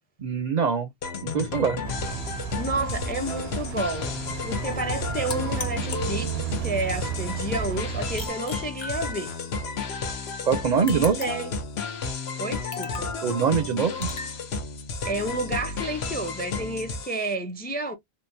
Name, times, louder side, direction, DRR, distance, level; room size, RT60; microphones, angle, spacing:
voice 1, 0.2-0.9 1.2-1.8 10.4-11.2 13.2-14.1, right 6 dB, 55° right, 0.5 m, -23 dB
sound 1, 1.0-17.3, left 4 dB, 85° left, 1.0 m, -32 dB
sound 2, 1.8-8.3, right 11 dB, 80° right, 0.8 m, -33 dB
voice 2, 2.6-4.2 4.4-9.4 10.9-11.5 12.4-13.1 15.1-17.9, right 2 dB, 15° left, 0.4 m, -31 dB
sound 3, 5.3-6.7 8.2-9.6 10.9-11.6 12.7-13.2 14.0-14.4, left 4 dB, 45° left, 0.7 m, -37 dB
3.7 x 2.2 x 2.5 m
omnidirectional pair, 1.0 m